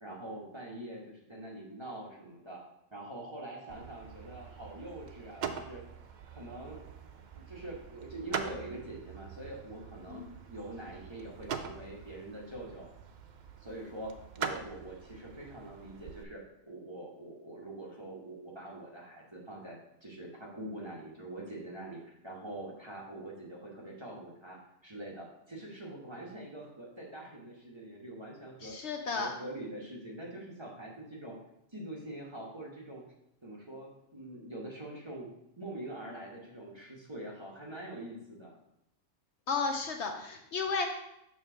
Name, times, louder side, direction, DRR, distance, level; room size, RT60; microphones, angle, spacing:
voice 1, 0.0-5.8 6.3-6.8 7.3-10.2 10.5-12.9 13.6-28.8 29.1-31.4 31.7-33.0 33.4-38.5, right 1 dB, 20° right, -3 dB, 1.1 m, -44 dB
sound 1, 3.7-16.2, right 6 dB, 75° right, 0.4 m, -43 dB
voice 2, 28.6-29.3 39.5-40.9, left 4 dB, 65° left, 4 dB, 0.9 m, -33 dB
6.8 x 3.3 x 6.1 m, 0.82 s
omnidirectional pair, 1.4 m